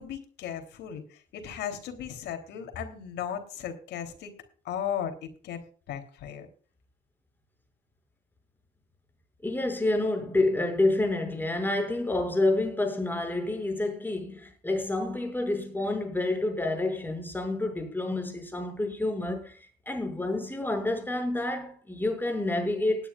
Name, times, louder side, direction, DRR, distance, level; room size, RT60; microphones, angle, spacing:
voice 1, 0.0-4.3 4.6-6.5, left 9 dB, 75° left, 3.3 m, -36 dB
voice 2, 9.4-23.1, left 2 dB, 10° left, 6.2 m, -28 dB
19.5 x 10.5 x 2.4 m
cardioid pair, 95°, 18 cm